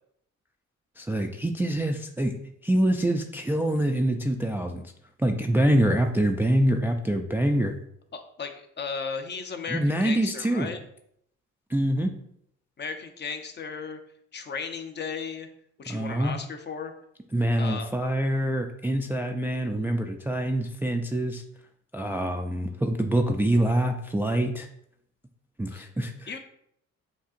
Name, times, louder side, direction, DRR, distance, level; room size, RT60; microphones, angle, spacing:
voice 1, 1.0-2.4 2.6-4.8 5.2-7.8 9.7-10.7 11.7-12.1 15.9-16.4 17.3-21.4 21.9-24.7 25.6-26.4, right 1 dB, 5° right, 4 dB, 0.3 m, -25 dB
voice 2, 8.1-10.8 12.8-14.0 14.3-15.5 15.8-16.9 17.6-17.9 25.7-25.9 26.3-26.4, left 5 dB, 35° left, 6 dB, 0.6 m, -35 dB
7.2 x 2.7 x 2.5 m, 0.73 s
cardioid pair, 90°, 30 cm